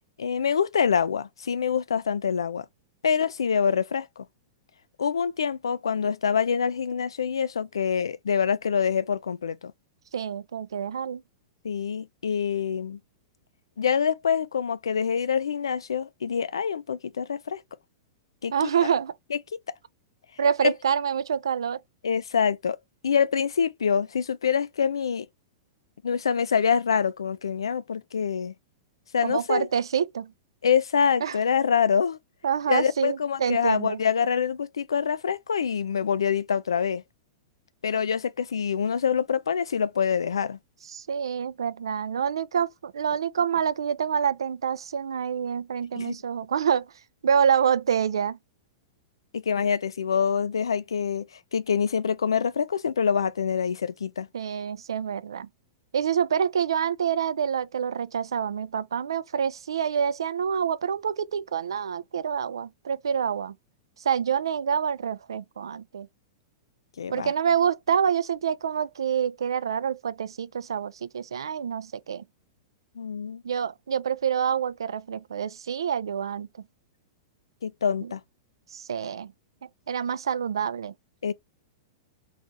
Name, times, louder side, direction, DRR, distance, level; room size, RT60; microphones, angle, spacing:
voice 1, 0.2-2.7 3.0-4.2 5.0-9.7 11.6-13.0 13.8-17.6 18.4-18.7 19.3-19.4 19.7-19.8 20.6-20.7 22.0-22.8 23.0-25.3 26.0-28.5 29.1-29.7 30.6-32.2 32.7-37.0 37.8-40.6 45.9-46.2 49.3-51.2 51.5-54.3 67.0-67.3 73.0-73.4 77.6-78.2 81.2-81.3, left 7 dB, 85° left, 0.3 m, -25 dB
voice 2, 10.1-11.2 18.5-19.1 20.4-21.8 29.2-30.3 31.2-31.4 32.4-34.0 40.9-46.9 47.2-48.4 54.3-55.5 55.9-63.5 64.1-66.1 67.1-72.2 73.4-76.5 78.7-79.3 79.9-80.9, right 7 dB, 80° right, 0.3 m, -27 dB
2.4 x 2.4 x 3.8 m
hypercardioid pair, 110°, 2 cm